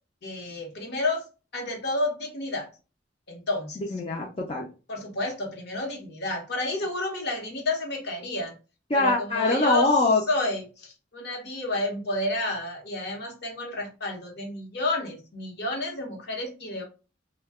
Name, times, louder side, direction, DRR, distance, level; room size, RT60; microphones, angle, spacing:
voice 1, 0.2-1.2 1.5-2.7 3.3-3.8 4.9-8.5 8.9-9.9 10.3-16.8, left 2 dB, 60° left, 1 dB, 0.9 m, -30 dB
voice 2, 3.8-4.6 8.9-10.2, left 3 dB, 30° left, -1 dB, 0.4 m, -23 dB
2.7 x 2.2 x 3.4 m, 0.33 s
head